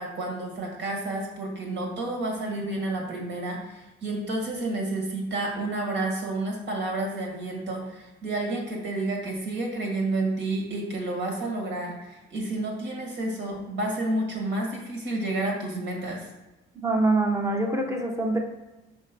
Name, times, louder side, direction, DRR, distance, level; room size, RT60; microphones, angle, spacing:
voice 1, 0.0-16.3, right 2 dB, 60° right, 0 dB, 2.0 m, -30 dB
voice 2, 16.8-18.4, right 2 dB, 15° right, 2 dB, 1.0 m, -24 dB
5.7 x 3.6 x 5.4 m, 1.0 s
cardioid pair, 125°, 21 cm